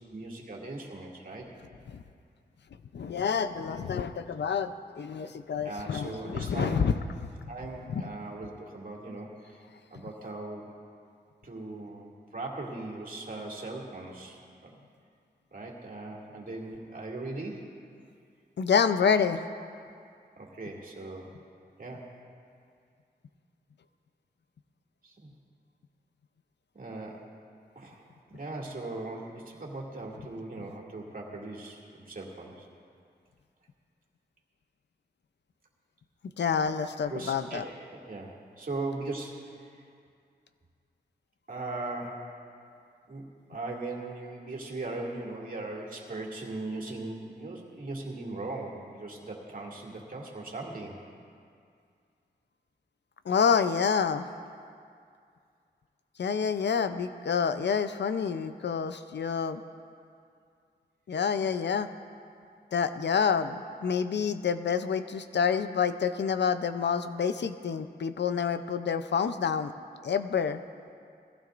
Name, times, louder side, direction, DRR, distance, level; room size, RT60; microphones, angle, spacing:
voice 1, 0.1-1.5 5.6-7.0 7.5-9.6 9.9-10.7 11.4-14.8 15.5-17.7 20.4-21.3 21.8-22.1 25.0-25.3 26.7-27.3 27.8-32.7 37.1-37.7 38.1-39.8 41.5-42.2 43.1-51.0, right 2 dB, 55° right, -3 dB, 2.5 m, -39 dB
voice 2, 2.9-6.9 18.6-19.4 36.4-37.6 53.3-54.3 56.2-59.6 61.1-61.9 62.7-69.7 70.0-70.6, left 6 dB, 80° left, 10 dB, 0.6 m, -28 dB
21.0 x 15.5 x 2.6 m, 2.3 s
wide cardioid pair, 70°, 18 cm